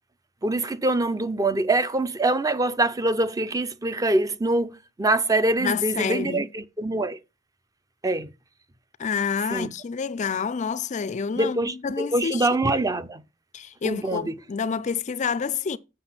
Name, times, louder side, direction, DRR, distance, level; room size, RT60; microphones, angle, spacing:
voice 1, 0.4-7.2 8.0-8.3 9.5-9.7 11.4-13.2 13.8-14.4, right 2 dB, 20° right, 0.6 m, -24 dB
voice 2, 5.6-6.5 9.0-12.5 13.5-15.8, left 6 dB, 35° left, 0.4 m, -28 dB
7.8 x 6.3 x 5.7 m
head